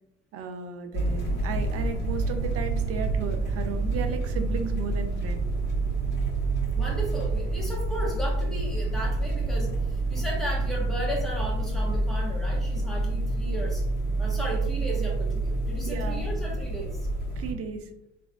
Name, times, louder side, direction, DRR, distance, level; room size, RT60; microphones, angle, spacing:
voice 1, 0.3-5.5 15.8-16.3 17.4-17.9, right 5 dB, 50° right, 6 dB, 0.5 m, -35 dB
sound 1, 0.9-17.5, right 2 dB, 35° left, 1.4 m, -28 dB
voice 2, 6.7-13.9 14.2-17.1, right 1 dB, ahead, -4 dB, 1.3 m, -35 dB
3.1 x 2.5 x 2.3 m, 0.80 s
hypercardioid pair, 70°, 31 cm